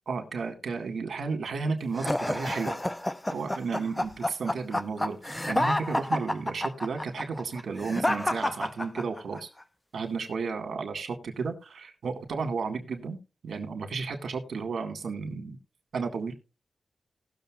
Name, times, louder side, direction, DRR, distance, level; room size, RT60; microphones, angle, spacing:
voice 1, 0.1-2.8 3.3-9.5 9.9-13.2 13.4-15.6 15.9-16.3, right 4 dB, 85° right, 5 dB, 2.1 m, -33 dB
sound 1, 2.0-9.4, left 1 dB, 15° left, 0.6 m, -29 dB
Sigh, 3.7-4.2, right 2 dB, 25° right, 2.3 m, -50 dB
19.0 x 6.8 x 2.5 m, 0.29 s
wide cardioid pair, 105°, 0 cm